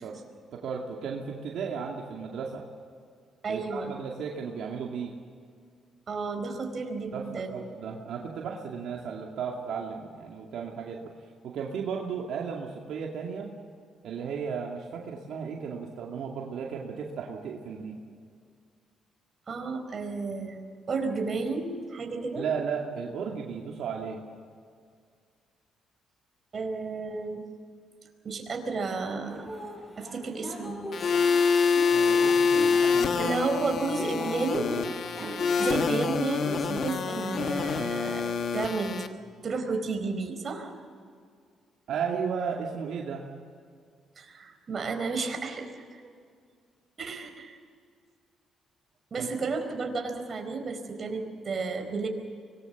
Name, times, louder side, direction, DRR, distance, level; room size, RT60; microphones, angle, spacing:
voice 1, 0.5-2.6 3.5-5.1 7.1-11.1 11.4-13.5 14.0-18.0 22.4-24.2 31.9-33.3 41.9-43.2 49.2-49.3, right 6 dB, 75° right, 0 dB, 2.5 m, -35 dB
voice 2, 3.4-4.0 6.1-7.6 19.5-20.6 20.9-22.5 26.5-27.4 28.2-29.6 30.0-30.8 33.2-34.7 35.2-39.0 39.4-40.7 44.2-46.0 47.0-47.6 49.1-52.1, right 4 dB, 45° right, 5 dB, 4.5 m, -32 dB
sound 1, 29.2-37.6, left 1 dB, 15° left, 4.8 m, -41 dB
sound 2, 30.9-39.1, left 5 dB, 60° left, 1.6 m, -26 dB
25.0 x 20.5 x 7.2 m, 2.1 s
cardioid pair, 90°, 0 cm